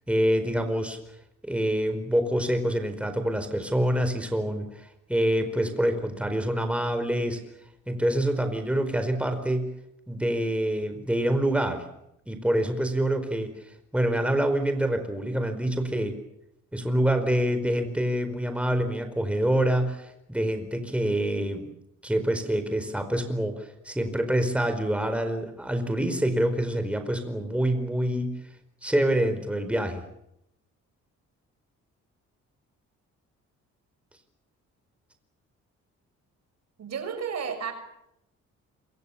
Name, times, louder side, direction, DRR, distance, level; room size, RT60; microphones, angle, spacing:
voice 1, 0.1-1.0 1.4-4.7 5.1-7.4 7.9-9.7 10.1-11.8 12.3-13.5 13.9-16.1 16.7-21.7 22.0-28.4 28.8-30.0, right 1 dB, 5° right, 8 dB, 4.7 m, -26 dB
voice 2, 36.8-37.7, right 6 dB, 60° right, 9 dB, 6.4 m, -32 dB
27.5 x 25.0 x 7.2 m, 0.81 s
cardioid pair, 90°, 30 cm